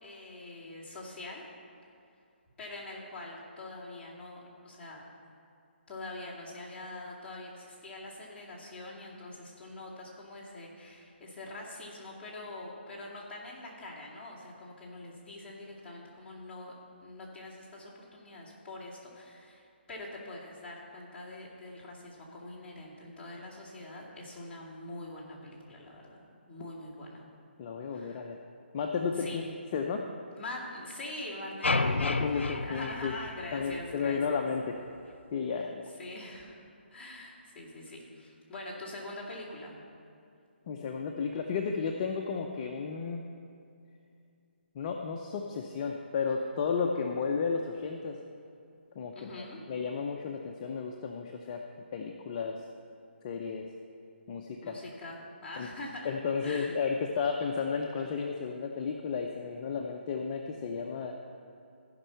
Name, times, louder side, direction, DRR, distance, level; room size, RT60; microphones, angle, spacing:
voice 1, 0.0-1.5 2.6-5.0 5.9-16.7 17.0-27.2 27.8-28.3 29.1-29.5 30.3-34.4 36.0-36.6 36.9-39.8 49.1-49.7 54.6-56.1 56.4-56.9, left 2 dB, 10° left, -9 dB, 2.2 m, -44 dB
voice 2, 27.6-28.4 28.7-29.4 29.7-30.1 32.0-33.1 33.5-34.8 35.3-35.9 40.7-43.2 44.7-48.2 49.0-51.6 51.9-52.6 53.2-53.7 54.3-54.7 55.6-55.7 56.0-61.2, left 5 dB, 30° left, 2 dB, 0.6 m, -33 dB
sound 1, 31.6-33.9, left 3 dB, 85° left, 0.6 m, -30 dB
14.5 x 5.4 x 5.7 m, 2.5 s
figure-of-eight pair, 155°, 6 cm